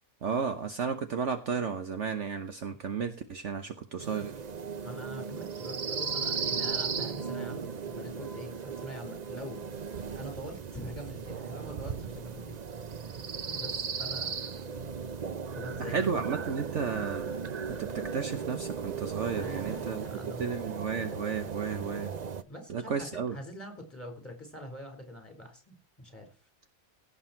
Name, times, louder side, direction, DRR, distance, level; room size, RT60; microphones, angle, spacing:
voice 1, 0.2-4.4 15.8-17.3 17.6-20.0 20.4-22.1 22.7-23.4, right 6 dB, 60° right, 7 dB, 1.2 m, -33 dB
sound 1, 4.0-22.4, right 6 dB, 40° right, 0.6 m, -36 dB
voice 2, 4.8-9.6 10.1-12.6 13.5-14.3 15.6-16.1 19.2-20.5 22.5-26.3, left 1 dB, 10° left, 3 dB, 4.3 m, -44 dB
17.0 x 7.1 x 4.4 m, 0.34 s
omnidirectional pair, 1.5 m